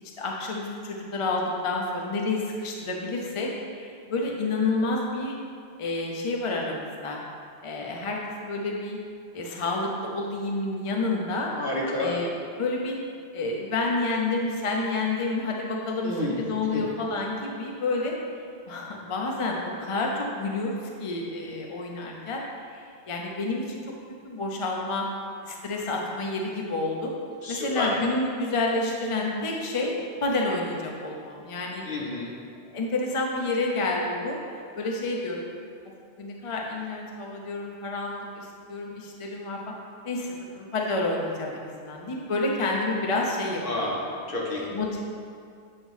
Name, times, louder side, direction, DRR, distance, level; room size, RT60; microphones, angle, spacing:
voice 1, 0.2-5.4 5.8-7.2 7.6-9.0 9.3-11.5 12.0-12.3 12.6-13.0 13.3-18.1 18.7-22.4 22.7-23.9 24.2-25.0 25.4-27.1 27.5-29.9 30.2-31.8 32.7-35.4 36.2-39.6 40.0-43.9 44.5-45.0, left 2 dB, 40° left, -1 dB, 0.5 m, -29 dB
voice 2, 11.5-12.1 16.0-16.4 16.7-16.8 27.4-27.9 31.8-32.3 43.6-44.6, left 2 dB, 55° left, -4 dB, 1.3 m, -30 dB
7.9 x 3.0 x 5.4 m, 2.3 s
omnidirectional pair, 1.1 m